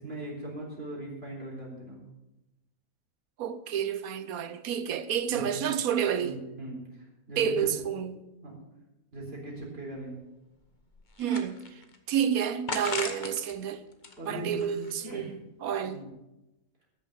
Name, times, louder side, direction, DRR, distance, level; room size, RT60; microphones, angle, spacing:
voice 1, 0.0-2.0 5.3-5.7 6.2-7.7 8.4-8.6 9.1-10.2 14.2-15.3 15.8-16.1, right 1 dB, 40° right, 4.1 m, -40 dB
voice 2, 3.4-6.3 7.4-8.2 11.2-11.8 12.1-13.8 14.3-16.0, right 8 dB, 70° right, 1.2 m, -30 dB
sound 1, 9.5-9.6 10.0-10.1 10.6-12.0 12.7-13.6 13.9-15.1, left 3 dB, 30° left, 1.2 m, -37 dB
13.5 x 7.0 x 7.4 m
omnidirectional pair, 1.7 m